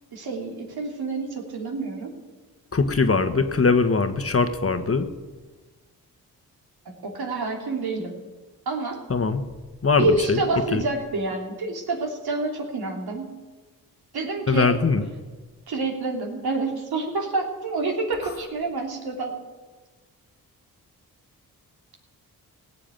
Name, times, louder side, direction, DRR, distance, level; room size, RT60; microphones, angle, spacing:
voice 1, 0.1-2.1 7.0-8.1 8.6-9.0 10.0-13.3 14.1-14.7 15.7-19.3, right 3 dB, 70° right, 2 dB, 3.2 m, -27 dB
voice 2, 2.7-5.1 9.1-9.4 9.8-10.4 10.7-10.8 14.5-15.0, left 4 dB, 35° left, 9 dB, 1.4 m, -21 dB
16.5 x 7.6 x 9.0 m, 1.3 s
supercardioid pair, 50°, 39 cm